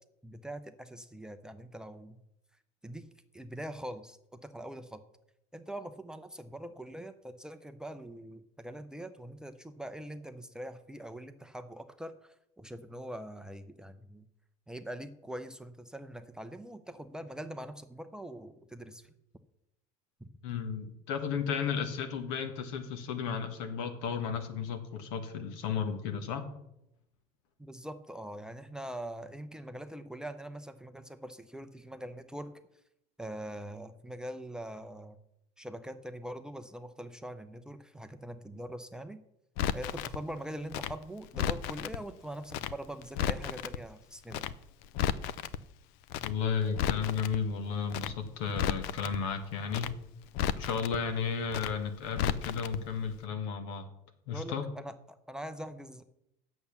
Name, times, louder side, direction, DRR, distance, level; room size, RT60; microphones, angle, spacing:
voice 1, 0.2-2.2 2.8-3.1 3.3-5.0 5.5-14.3 14.7-19.1 27.6-32.5 33.2-35.2 35.6-39.2 39.7-44.5 54.3-56.0, right 1 dB, 5° right, 8 dB, 0.5 m, -43 dB
voice 2, 20.4-26.5 46.2-49.9 50.5-53.9 54.3-54.6, left 6 dB, 90° left, 7 dB, 1.6 m, -33 dB
Crackle, 39.6-40.2 40.7-42.0 42.5-42.7 43.0-43.8 44.3-44.5 44.8-45.6 46.1-46.3 46.6-47.4 47.9-48.1 48.4-49.2 49.7-49.9 50.2-51.0 51.5-51.7 52.0-52.8 53.0-53.2, left 10 dB, 70° left, 0.6 m, -33 dB
8.6 x 7.0 x 7.0 m, 0.82 s
cardioid pair, 155°, 16 cm